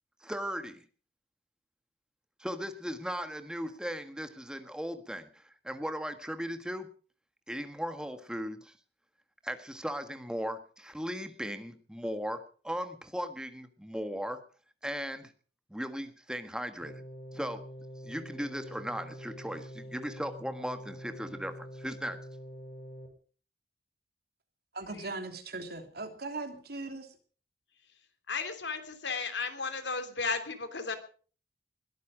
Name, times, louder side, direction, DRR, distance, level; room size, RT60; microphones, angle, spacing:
voice 1, 0.2-0.9 2.4-6.9 7.5-8.8 9.4-14.4 14.8-15.3 15.7-17.0 17.3-17.7 18.0-22.2, equal, 5° right, 8 dB, 1.6 m, -37 dB
sound 1, 16.8-23.1, equal, 60° left, 5.5 m, -45 dB
voice 2, 24.7-27.2, right 3 dB, 60° right, 6 dB, 3.1 m, -39 dB
voice 3, 28.3-31.0, left 4 dB, 85° left, 8 dB, 3.1 m, -34 dB
21.0 x 13.0 x 5.0 m, 0.42 s
head